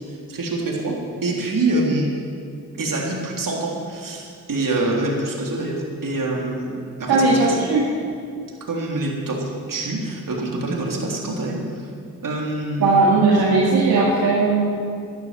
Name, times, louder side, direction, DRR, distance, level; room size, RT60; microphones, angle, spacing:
voice 1, 0.1-2.1 2.8-7.6 8.6-11.9 12.2-13.2, right 2 dB, 60° right, -1 dB, 3.5 m, -25 dB
voice 2, 7.1-7.8 12.8-14.7, right 3 dB, 75° right, -5 dB, 2.2 m, -17 dB
12.0 x 11.5 x 7.6 m, 2.3 s
supercardioid pair, 40°, 37 cm